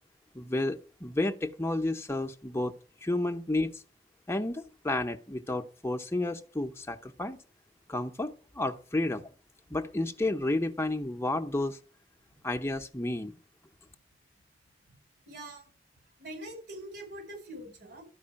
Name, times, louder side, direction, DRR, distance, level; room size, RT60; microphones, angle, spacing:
voice 1, 0.3-2.8 3.0-3.8 4.3-7.4 7.9-9.2 9.7-11.8 12.4-13.4, left 2 dB, 15° left, 0.7 m, -31 dB
voice 2, 15.3-15.6 16.2-18.1, right 1 dB, 65° right, 5.0 m, -43 dB
12.5 x 4.8 x 8.6 m
head